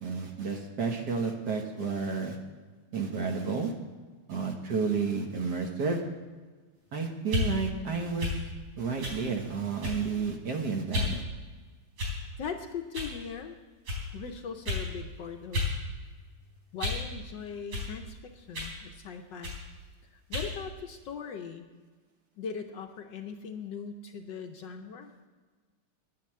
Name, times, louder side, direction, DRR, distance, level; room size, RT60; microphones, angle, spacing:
voice 1, 0.0-2.3 2.9-3.7 4.3-6.0 6.9-8.3 8.8-11.2, right 5 dB, 55° right, 3 dB, 1.5 m, -31 dB
sound 1, 7.2-7.5 8.2-8.4 9.0-9.2 9.8-10.1 10.9-11.1 12.0-12.3 12.9-13.1 13.8-14.0 14.6-14.9 15.5-15.7 16.1-17.1 17.7-17.9 18.5-18.8 19.4-19.6 20.3-20.5, left 2 dB, 90° right, 4.7 m, -32 dB
voice 2, 12.4-13.6 14.1-15.6 16.7-19.5 20.3-21.7 22.4-25.1, left 6 dB, 65° left, 5 dB, 1.3 m, -40 dB
10.5 x 9.1 x 7.4 m, 1.4 s
omnidirectional pair, 2.4 m